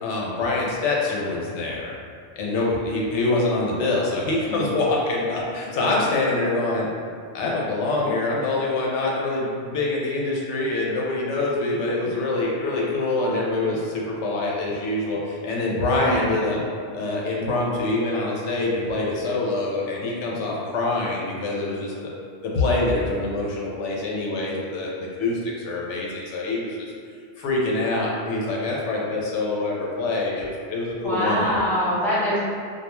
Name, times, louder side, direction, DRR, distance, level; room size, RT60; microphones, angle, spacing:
voice 1, 0.0-2.0 2.4-6.9 7.3-16.6 16.9-21.9 22.4-26.9 27.4-31.5, left 2 dB, 85° left, -3 dB, 0.9 m, -25 dB
voice 2, 31.0-32.4, equal, ahead, -12 dB, 0.6 m, -23 dB
2.3 x 2.2 x 2.9 m, 2.2 s
omnidirectional pair, 1.2 m